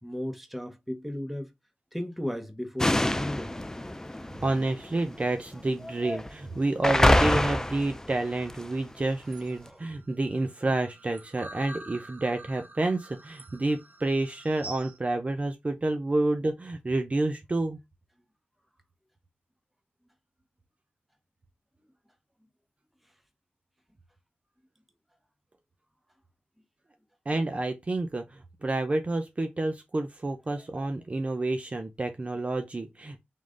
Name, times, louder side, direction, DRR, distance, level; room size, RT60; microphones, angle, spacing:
voice 1, 0.0-1.5 1.9-3.5 9.6-9.8 30.6-30.7, equal, 5° right, 1.0 m, -35 dB
sound 1, 2.8-5.2 5.8-6.3 6.8-8.7, left 1 dB, 15° left, 0.4 m, -26 dB
voice 2, 4.4-17.8 27.3-33.2, right 2 dB, 35° right, 0.6 m, -29 dB
sound 2, 9.2-15.0, right 2 dB, 60° right, 1.1 m, -47 dB
3.7 x 3.1 x 3.8 m
wide cardioid pair, 70°, 4 cm